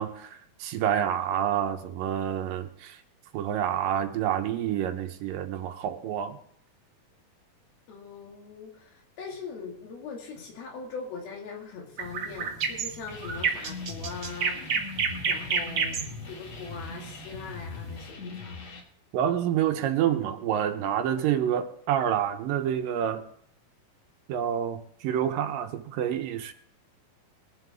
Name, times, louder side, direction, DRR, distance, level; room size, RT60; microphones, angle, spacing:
voice 1, 0.0-3.0 3.3-6.4 19.1-23.2 24.3-26.5, right 10 dB, 75° right, 2.6 m, -28 dB
voice 2, 7.9-14.9 15.3-16.0 16.3-18.6, left 5 dB, 90° left, 4.2 m, -41 dB
sound 1, 12.0-18.1, right 5 dB, 55° right, 1.5 m, -30 dB
sound 2, 13.1-18.8, left 4 dB, 55° left, 2.3 m, -41 dB
22.5 x 7.7 x 3.5 m
omnidirectional pair, 4.2 m